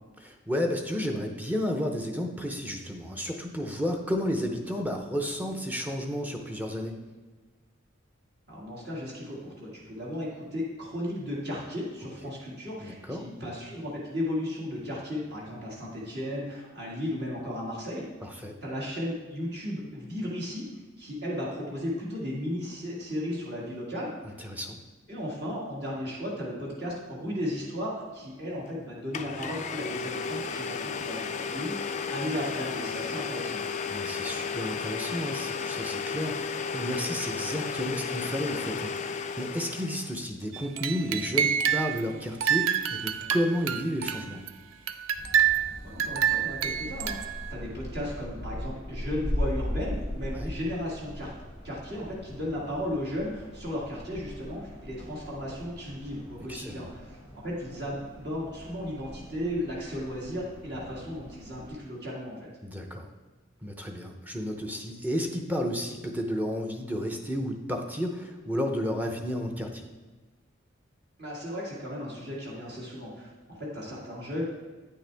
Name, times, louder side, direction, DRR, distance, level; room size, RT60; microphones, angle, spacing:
voice 1, 0.2-6.9 12.8-13.2 18.2-18.6 24.2-24.8 33.9-44.4 50.3-50.5 56.5-56.9 62.6-63.1 63.6-69.9, equal, 10° right, 2 dB, 0.6 m, -32 dB
voice 2, 8.5-18.1 18.6-20.6 21.0-24.5 25.1-33.6 45.8-51.3 51.6-62.4 71.2-74.6, left 1 dB, 50° right, -5 dB, 1.8 m, -35 dB
Domestic sounds home sounds, 28.7-28.8 29.1-40.2, left 5 dB, 35° left, 0.4 m, -33 dB
sound 1, 40.5-42.0 42.4-44.5 44.9-47.5, right 9 dB, 80° right, 0.5 m, -27 dB
sound 2, 45.1-61.7, left 1 dB, 35° right, 2.6 m, -39 dB
9.0 x 6.5 x 3.4 m, 1.3 s
head